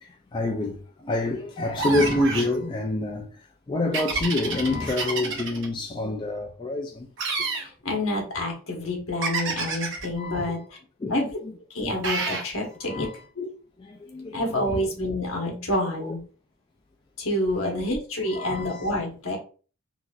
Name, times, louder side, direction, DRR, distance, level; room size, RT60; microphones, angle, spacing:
voice 1, 0.0-3.3 3.7-7.1 10.2-10.6 11.0-11.2 12.8-13.2 13.8-14.4 14.7-14.8 16.0-16.2 17.6-17.8 18.3-18.9, left 2 dB, 20° left, 0.3 m, -27 dB
sound 1, 1.8-2.5 3.9-5.7 7.2-7.7 9.2-10.1 12.0-12.5, right 4 dB, 55° right, 0.8 m, -28 dB
voice 2, 7.5-10.6 11.1-11.3 11.7-13.1 13.4-13.5 14.3-16.2 17.2-19.4, left 1 dB, 65° left, 1.1 m, -28 dB
3.9 x 2.6 x 2.4 m
head